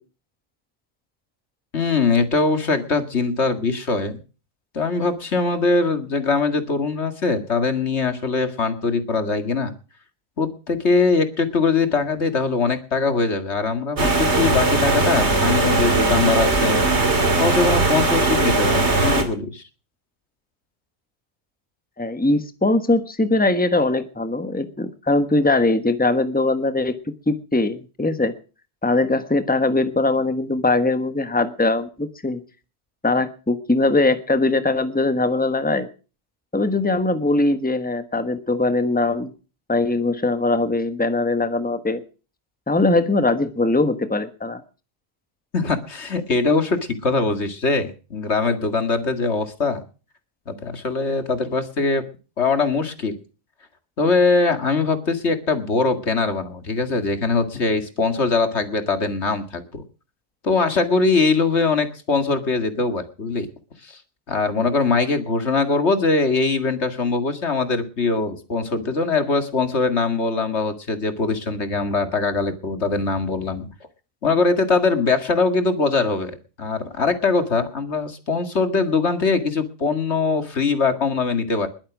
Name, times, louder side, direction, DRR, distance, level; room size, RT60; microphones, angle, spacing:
voice 1, 1.7-4.2 4.7-9.7 10.4-16.8 17.4-19.6 45.5-49.8 50.5-52.0 52.4-53.1 54.0-59.8 60.4-63.5 63.8-64.0 64.3-73.7 74.2-81.7, left 4 dB, 85° left, 8 dB, 2.3 m, -22 dB
sound 1, 14.0-19.2, right 2 dB, 85° right, 2.9 m, -19 dB
voice 2, 22.0-27.0 27.3-28.3 28.8-32.4 33.0-35.9 36.5-39.3 39.7-42.0 42.7-44.6, left 2 dB, 10° left, 10 dB, 1.2 m, -21 dB
21.0 x 8.8 x 6.1 m, 0.37 s
omnidirectional pair, 1.1 m